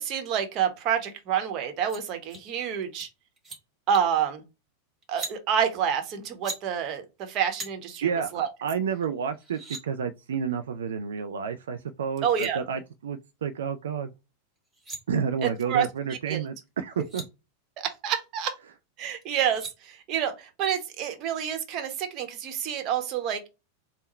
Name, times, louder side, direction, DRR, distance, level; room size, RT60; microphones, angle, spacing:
voice 1, 0.0-3.1 3.9-4.4 5.1-8.5 12.2-12.6 15.4-16.4 17.8-18.5 19.0-23.5, right 8 dB, 35° right, 1.0 m, -28 dB
sound 1, 1.9-2.0 2.3-2.4 2.8-3.1 3.4-3.6 3.9-4.2 5.0-5.4 6.2-6.6 7.6-7.7 9.0-9.1 9.3-9.8 11.9-12.0 12.2-12.5 14.6-15.0 16.7-16.8 16.9-17.3 19.2-19.7, right 2 dB, 20° right, 1.5 m, -39 dB
voice 2, 8.0-14.1 15.1-17.2, right 6 dB, 65° right, 0.4 m, -30 dB
3.6 x 2.1 x 4.2 m
figure-of-eight pair, 90°, 0 cm